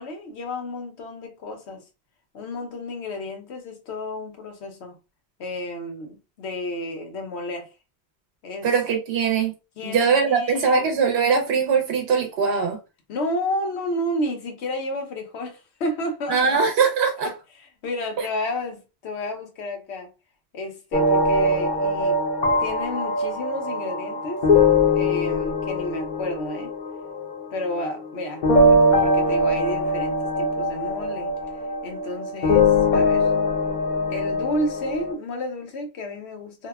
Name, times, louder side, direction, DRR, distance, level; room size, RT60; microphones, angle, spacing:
voice 1, 0.0-1.8 2.3-5.0 5.4-7.7 8.4-8.7 9.8-10.8 13.1-16.6 17.2-17.3 17.6-20.1 20.5-22.2 22.6-26.7 27.5-31.3 31.8-33.3 34.1-36.7, left 1 dB, 85° left, 1.0 m, -31 dB
voice 2, 8.6-9.5 9.8-12.8 16.3-17.3, right 5 dB, 70° right, 0.8 m, -21 dB
sound 1, 20.9-28.1 28.4-35.1, left 2 dB, 50° left, 0.7 m, -22 dB
2.7 x 2.1 x 2.2 m
omnidirectional pair, 1.1 m